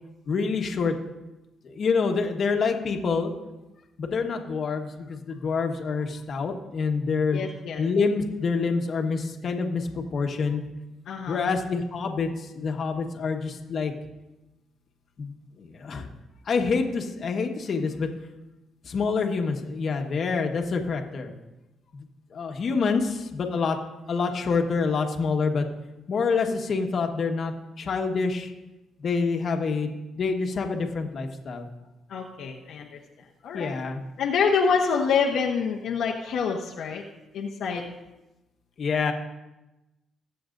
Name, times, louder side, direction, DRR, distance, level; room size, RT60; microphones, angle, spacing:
voice 1, 0.3-0.9 1.6-3.3 4.0-7.4 7.8-10.6 11.3-13.9 15.2-16.1 16.5-18.1 18.8-21.3 21.9-22.1 22.3-23.8 24.1-25.6 26.1-28.5 29.0-31.7 33.5-34.0 38.8-39.1, left 4 dB, 55° left, 3 dB, 1.4 m, -27 dB
voice 2, 7.3-7.8 11.1-11.4 32.1-32.9 33.4-33.8 34.2-37.0 37.3-37.9, left 5 dB, 75° left, -1 dB, 1.0 m, -26 dB
21.5 x 7.8 x 2.6 m, 1.0 s
cardioid pair, 90°, 0 cm